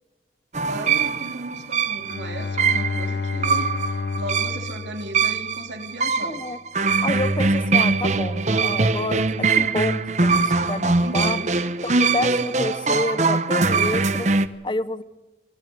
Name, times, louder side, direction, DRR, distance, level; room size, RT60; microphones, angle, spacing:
sound 1, 0.5-14.5, right 4 dB, 40° right, 0.8 m, -22 dB
voice 1, 0.5-3.7 4.2-6.4 11.0-11.5, right 1 dB, 90° right, 5 dB, 3.4 m, -35 dB
Bowed string instrument, 2.0-5.8, left 4 dB, 70° left, 0.8 m, -30 dB
voice 2, 6.2-6.6 7.0-11.4 11.8-14.3 14.6-15.0, left 2 dB, 25° left, 16 dB, 0.7 m, -29 dB
24.5 x 14.0 x 9.7 m, 1.1 s
head